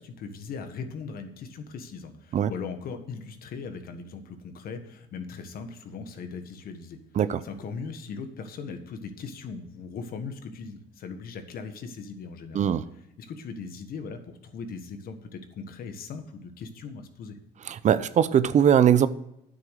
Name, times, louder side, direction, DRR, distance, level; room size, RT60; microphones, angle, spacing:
voice 1, 0.0-7.0 7.4-12.7 13.2-17.4, left 5 dB, 60° left, 7 dB, 1.6 m, -39 dB
voice 2, 17.7-19.1, right 9 dB, 45° right, 15 dB, 0.6 m, -21 dB
9.7 x 8.0 x 6.5 m, 0.81 s
cardioid pair, 110°, 17 cm